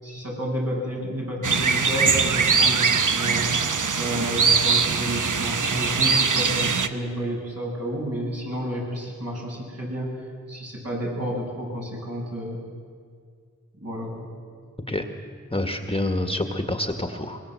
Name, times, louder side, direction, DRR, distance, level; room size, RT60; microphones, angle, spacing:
voice 1, 0.0-3.5 3.9-10.1 10.5-12.6 13.8-14.3, equal, 55° right, -3 dB, 7.8 m, -30 dB
sound 1, 1.4-6.9, right 5 dB, 85° right, 1.0 m, -22 dB
voice 2, 15.5-17.4, left 1 dB, 20° left, 5 dB, 1.8 m, -27 dB
24.5 x 21.5 x 7.8 m, 2.1 s
wide cardioid pair, 55°, 30 cm